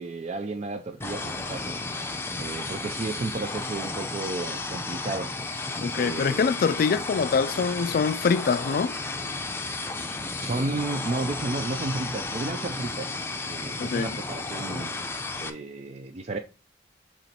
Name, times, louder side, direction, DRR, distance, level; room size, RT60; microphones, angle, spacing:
voice 1, 0.0-1.8 2.4-5.3 6.0-6.5 10.4-13.2 13.5-14.9 15.4-16.4, right 2 dB, 40° right, 0.4 m, -32 dB
sound 1, 1.0-15.5, left 3 dB, 15° left, 0.6 m, -33 dB
voice 2, 5.8-9.0 13.8-14.2, left 5 dB, 55° left, 0.3 m, -24 dB
7.2 x 3.0 x 4.3 m
head